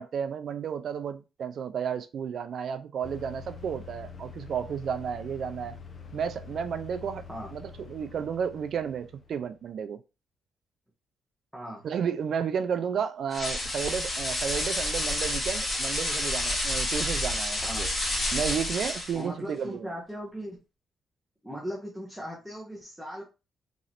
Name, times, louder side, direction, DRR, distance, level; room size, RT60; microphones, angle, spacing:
voice 1, 0.0-5.7 6.1-7.2 7.5-10.0 11.8-17.9 18.3-19.9, right 7 dB, 65° right, 0.3 m, -32 dB
sound 1, 3.0-9.6, left 5 dB, 45° left, 0.7 m, -45 dB
voice 2, 11.5-11.9 17.6-17.8 19.1-20.6 21.4-23.2, equal, ahead, 1.0 m, -38 dB
sound 2, 13.3-19.2, left 1 dB, 30° left, 1.5 m, -29 dB
3.7 x 3.1 x 2.8 m
cardioid pair, 100°, 0 cm